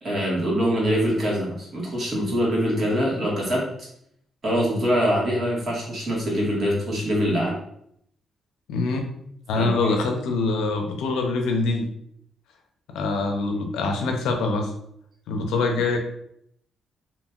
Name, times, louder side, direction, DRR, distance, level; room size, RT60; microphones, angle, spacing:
voice 1, 0.0-3.6 4.4-7.6 9.6-10.0, equal, 50° right, -5 dB, 1.4 m, -24 dB
voice 2, 8.7-9.1 9.5-11.9 12.9-14.7 15.3-16.0, left 3 dB, 90° left, 4 dB, 0.5 m, -24 dB
2.9 x 2.6 x 2.4 m, 0.72 s
cardioid pair, 70°, 0 cm